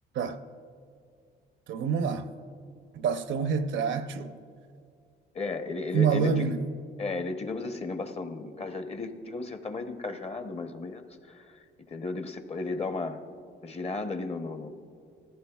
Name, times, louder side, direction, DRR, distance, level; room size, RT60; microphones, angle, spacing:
voice 1, 1.7-2.3 2.9-4.4 5.9-6.7, right 6 dB, 70° right, 0.7 m, -27 dB
voice 2, 5.3-6.5 7.0-11.6 11.9-13.2 13.6-14.7, left 3 dB, 30° left, 0.9 m, -34 dB
19.0 x 14.5 x 2.3 m
cardioid pair, 90°, 20 cm